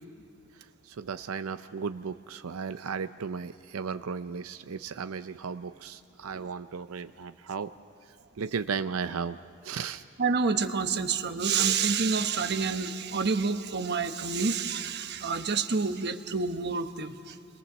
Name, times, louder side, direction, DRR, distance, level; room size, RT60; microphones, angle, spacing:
voice 1, 0.8-7.7 8.4-9.4 9.6-10.0, right 5 dB, 85° right, 11 dB, 0.5 m, -35 dB
voice 2, 10.2-17.4, right 5 dB, 55° right, 9 dB, 1.0 m, -28 dB
28.0 x 21.5 x 7.2 m, 2.3 s
head